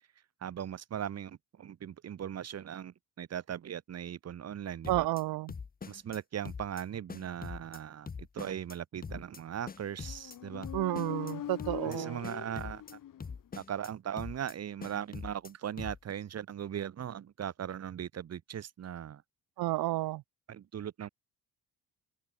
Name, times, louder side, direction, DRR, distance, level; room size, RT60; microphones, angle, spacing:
voice 1, 0.4-5.1 5.9-8.1 8.3-10.7 11.8-13.0 13.6-19.2 20.5-21.1, right 9 dB, 40° right, 1.4 m, -39 dB
sound 1, 4.8-5.2 5.5-6.2 6.5-6.8 7.1-7.8 8.1-8.8 9.0-9.4 9.7-10.4 10.6-11.3 11.6-12.0 12.2-12.9 13.2-13.9 14.2-14.5 14.8-15.5 15.8-16.1, left 5 dB, 25° left, 1.4 m, -43 dB
voice 2, 4.9-5.5 10.7-12.2 19.6-20.2, right 17 dB, 70° right, 0.6 m, -31 dB
Motorcycle, 9.8-13.5, left 11 dB, 55° left, 2.1 m, -42 dB
cardioid pair, 150°, 38 cm